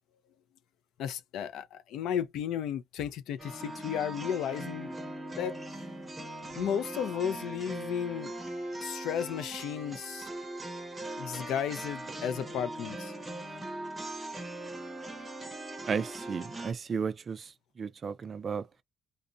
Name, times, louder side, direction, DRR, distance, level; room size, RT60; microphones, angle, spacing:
voice 1, 1.0-5.0 5.4-5.6 6.6-8.3 8.8-10.3 11.2-13.1, left 9 dB, 75° left, 0.4 m, -34 dB
sound 1, 3.4-16.7, right 1 dB, 15° right, 0.8 m, -40 dB
voice 2, 15.9-17.4 17.8-18.6, right 6 dB, 35° right, 0.4 m, -33 dB
2.4 x 2.1 x 2.5 m
cardioid pair, 140°, 0 cm